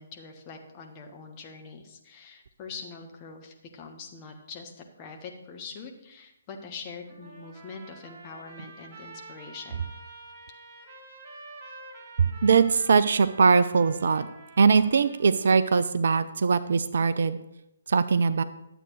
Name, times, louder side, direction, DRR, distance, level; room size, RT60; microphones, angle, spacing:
voice 1, 0.0-9.8, left 4 dB, 25° left, 2 dB, 1.2 m, -43 dB
Trumpet, 7.1-15.9, right 3 dB, 20° right, 1.8 m, -48 dB
voice 2, 12.2-14.3 14.6-17.4 17.9-18.4, right 5 dB, 50° right, 12 dB, 0.4 m, -21 dB
11.5 x 7.9 x 3.2 m, 0.87 s
figure-of-eight pair, 135°, 0 cm